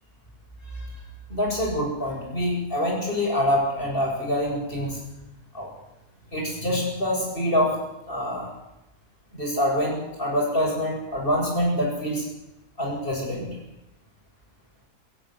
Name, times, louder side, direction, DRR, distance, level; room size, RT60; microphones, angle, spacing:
voice 1, 1.3-5.0 5.5-5.7 6.3-7.8 8.1-8.5 9.3-12.2 12.8-13.5, equal, 30° left, -2 dB, 8.4 m, -25 dB
23.0 x 15.5 x 8.1 m, 0.91 s
omnidirectional pair, 1.7 m